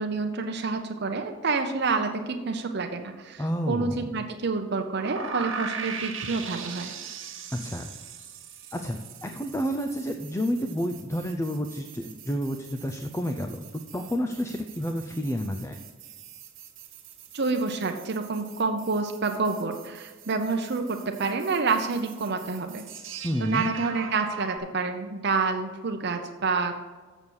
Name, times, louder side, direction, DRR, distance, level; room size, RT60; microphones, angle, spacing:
voice 1, 0.0-6.9 17.3-22.8 23.4-26.8, right 4 dB, 60° right, 4 dB, 0.8 m, -28 dB
voice 2, 3.4-4.1 7.5-7.9 8.7-13.7 13.9-15.8 23.2-23.7, equal, 15° left, 4 dB, 0.5 m, -30 dB
sound 1, 5.0-24.6, right 5 dB, 80° right, 1.5 m, -41 dB
7.2 x 6.9 x 6.2 m, 1.4 s
head